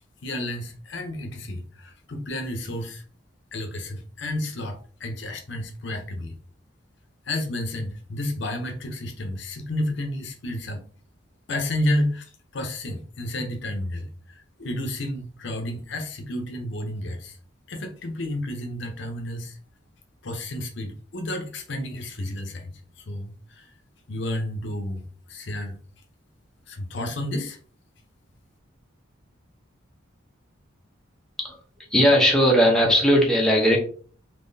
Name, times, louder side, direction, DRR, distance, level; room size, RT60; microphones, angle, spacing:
voice 1, 0.2-3.0 3.5-6.4 7.3-10.8 11.5-17.4 17.7-19.6 20.2-23.7 24.1-25.0 25.3-25.8 26.7-27.6, left 1 dB, 60° left, 4 dB, 0.6 m, -31 dB
voice 2, 31.9-33.8, equal, 5° left, -2 dB, 0.7 m, -18 dB
3.6 x 2.8 x 2.6 m, 0.43 s
head